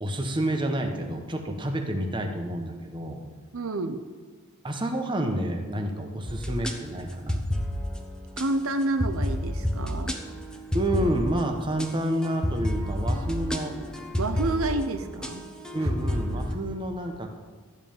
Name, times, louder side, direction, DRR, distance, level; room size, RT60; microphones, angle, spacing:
voice 1, 0.0-3.2 4.6-7.4 10.7-13.7 15.7-17.3, right 1 dB, 20° right, 3 dB, 1.2 m, -29 dB
voice 2, 3.5-4.0 8.4-10.2 14.2-15.4 15.8-15.9, right 2 dB, 70° right, 8 dB, 0.7 m, -29 dB
sound 1, 6.3-6.7 7.3-8.0 8.4-8.5 9.0-16.5, left 1 dB, 5° left, 1.0 m, -30 dB
12.5 x 5.4 x 9.1 m, 1.5 s
head